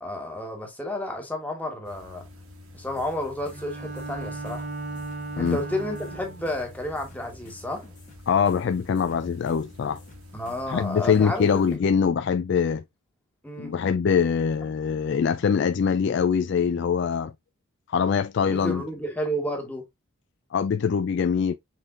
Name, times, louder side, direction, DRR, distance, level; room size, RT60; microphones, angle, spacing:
voice 1, 0.0-2.2 2.7-4.7 5.4-7.8 10.3-11.6 13.4-13.7 18.4-19.8, left 1 dB, 5° left, 1.2 m, -31 dB
sound 1, 1.8-11.8, left 1 dB, 85° right, 1.8 m, -47 dB
sound 2, 3.0-10.8, left 2 dB, 35° left, 1.4 m, -53 dB
Bowed string instrument, 3.5-6.6, right 3 dB, 35° right, 0.6 m, -36 dB
voice 2, 8.3-10.0 10.7-12.8 13.6-17.3 17.9-18.8 20.5-21.5, left 6 dB, 50° left, 0.3 m, -23 dB
5.8 x 3.7 x 2.5 m
head